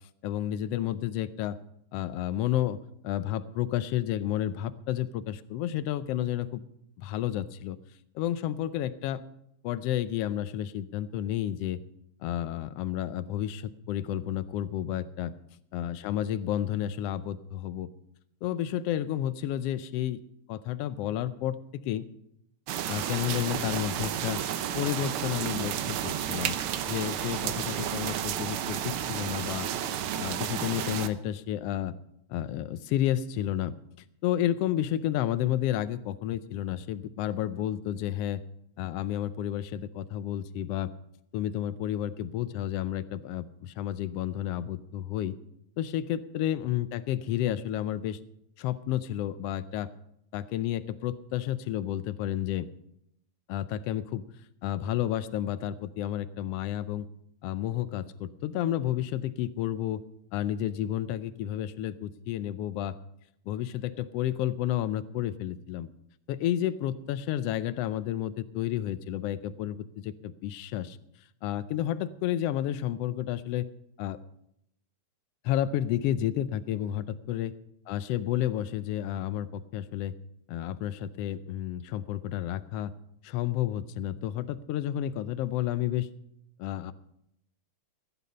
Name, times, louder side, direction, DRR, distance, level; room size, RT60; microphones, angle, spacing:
voice 1, 0.2-1.6 1.9-6.6 7.0-7.8 8.1-9.2 9.6-11.8 12.2-15.3 15.7-17.9 18.4-20.2 20.5-21.6 21.8-22.0 22.9-24.4 24.7-26.6 26.9-29.7 30.2-31.9 32.3-33.7 34.2-38.4 38.8-40.9 41.3-45.4 45.8-48.2 48.6-49.9 50.3-52.7 53.5-54.3 54.6-57.1 57.4-60.0 60.3-63.0 63.5-65.9 66.3-71.0 71.4-73.7 74.0-74.2 75.4-77.5 77.9-80.1 80.5-82.9 83.2-86.1 86.6-86.9, left 12 dB, 75° left, 14 dB, 1.4 m, -31 dB
sound 1, 22.7-31.1, right 10 dB, 75° right, 1.2 m, -32 dB
15.0 x 10.0 x 5.4 m, 0.76 s
omnidirectional pair, 3.3 m